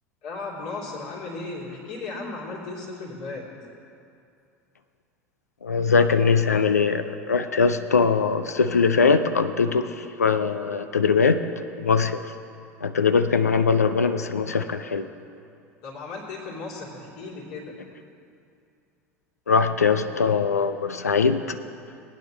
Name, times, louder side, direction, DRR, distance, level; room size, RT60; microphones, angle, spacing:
voice 1, 0.2-3.5 15.8-17.7, left 3 dB, 55° left, -5 dB, 3.2 m, -35 dB
voice 2, 5.6-11.4 11.8-12.3 12.8-15.1 19.5-21.6, left 5 dB, 80° left, 11 dB, 0.5 m, -21 dB
19.5 x 9.6 x 3.1 m, 2.5 s
figure-of-eight pair, 75°, 8 cm